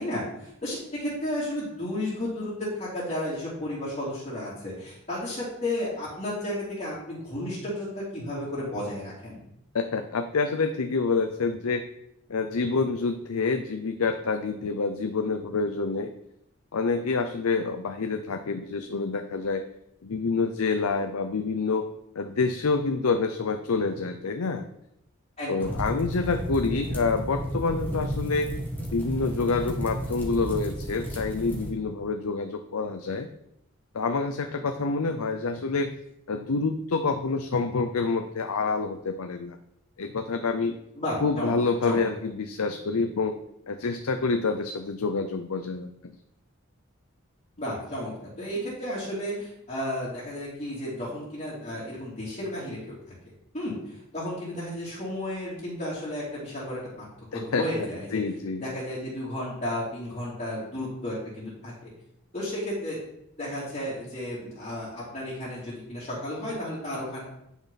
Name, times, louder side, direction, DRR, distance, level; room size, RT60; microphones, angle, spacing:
voice 1, 0.0-9.4 25.4-25.7 41.0-41.5 41.8-42.0 47.6-48.1 48.4-52.9 53.5-57.0 57.3-58.2 58.6-61.9 62.3-63.0 63.4-67.2, left 1 dB, 30° left, -9 dB, 3.0 m, -33 dB
voice 2, 9.7-11.8 12.3-16.1 16.7-19.7 20.0-21.8 22.2-24.7 25.5-28.5 28.9-33.3 33.9-35.9 36.3-39.6 40.0-40.8 41.2-43.3 43.7-45.9 57.3-57.6 58.1-58.6, left 4 dB, 90° left, 7 dB, 0.6 m, -27 dB
sound 1, 25.6-31.7, right 1 dB, 10° left, 1.6 m, -33 dB
10.0 x 6.1 x 4.2 m, 0.80 s
head